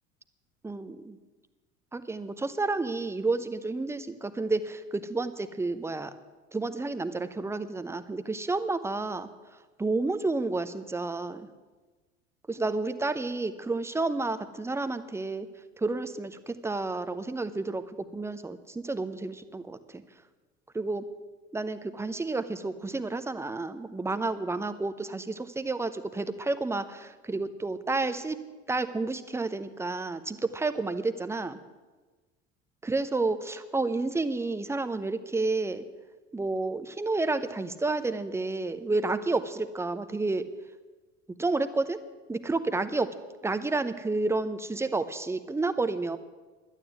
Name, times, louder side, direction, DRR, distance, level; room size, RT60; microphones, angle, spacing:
voice 1, 0.6-1.2 1.9-6.1 6.5-9.3 9.8-11.5 12.5-15.5 15.8-20.0 20.7-21.1 21.5-31.6 32.8-35.8 36.3-40.5 41.4-42.0 42.3-43.1 43.4-46.2, right 3 dB, 5° right, 11 dB, 0.8 m, -30 dB
12.0 x 9.1 x 9.3 m, 1.3 s
figure-of-eight pair, 70°, 36 cm